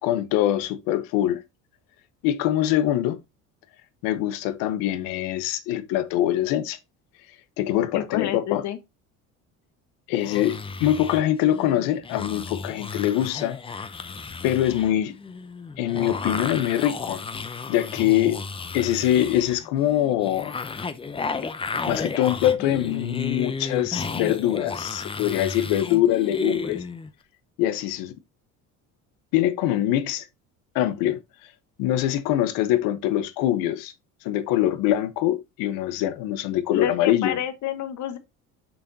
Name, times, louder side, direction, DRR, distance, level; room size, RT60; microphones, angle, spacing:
voice 1, 0.0-1.4 2.2-3.2 4.0-6.8 7.6-8.6 10.1-13.9 14.4-15.2 15.8-17.2 17.7-18.4 18.7-20.5 21.9-26.9 27.6-28.1 29.3-30.3 30.7-31.5 31.8-33.9 34.2-37.4, left 12 dB, 90° left, 1.0 m, -23 dB
voice 2, 7.9-8.8 36.7-38.2, left 10 dB, 55° left, 1.3 m, -29 dB
sound 1, 10.2-27.1, left 4 dB, 15° left, 0.6 m, -33 dB
6.9 x 5.9 x 2.8 m
cardioid pair, 120°, 34 cm